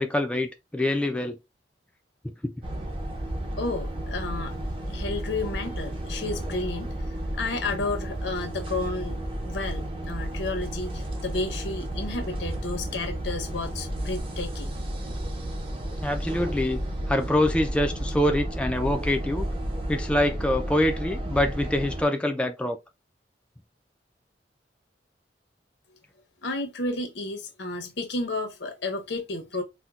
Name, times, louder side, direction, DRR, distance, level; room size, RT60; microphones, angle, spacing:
voice 1, 0.0-1.4 2.4-2.5 16.0-16.8 17.1-19.4 19.9-22.8, left 1 dB, 5° left, 0.3 m, -25 dB
sound 1, 2.6-22.0, right 1 dB, 30° right, 0.7 m, -32 dB
voice 2, 3.6-4.6 4.9-6.9 7.3-14.7 26.4-29.6, left 2 dB, 85° left, 0.8 m, -32 dB
4.3 x 2.1 x 2.3 m
head